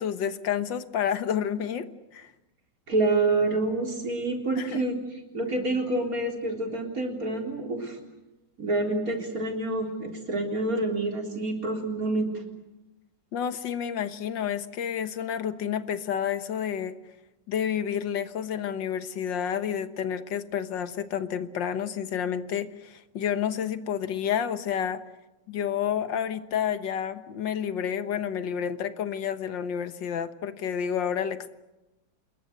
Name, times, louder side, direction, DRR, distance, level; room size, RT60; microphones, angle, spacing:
voice 1, 0.0-2.3 4.6-4.8 13.3-17.0 17.5-25.0 25.5-31.5, left 8 dB, 90° left, 11 dB, 1.9 m, -30 dB
voice 2, 2.9-8.0 8.6-12.4, right 2 dB, 50° right, 2 dB, 4.2 m, -27 dB
27.5 x 21.5 x 8.0 m, 1.0 s
omnidirectional pair, 1.9 m